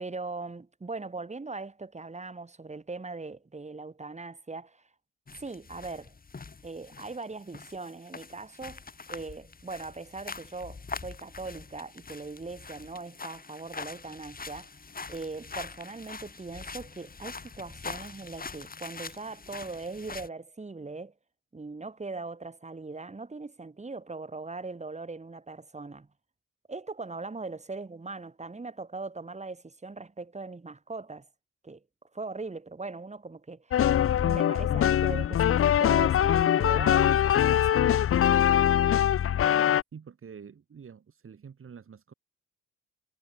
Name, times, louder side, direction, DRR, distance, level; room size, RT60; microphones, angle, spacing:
voice 1, 0.0-4.8 5.3-6.1 6.6-8.8 9.1-14.7 15.1-21.1 21.5-26.1 26.7-31.3 31.6-31.8 32.1-33.9 34.2-38.0, right 3 dB, 20° right, 7.5 m, -40 dB
sound 1, 5.3-20.3, left 4 dB, 30° left, 4.0 m, -43 dB
sound 2, 33.7-39.8, left 10 dB, 45° left, 0.7 m, -23 dB
voice 2, 39.9-42.1, right 6 dB, 45° right, 5.1 m, -47 dB
cardioid pair, 90°, 30 cm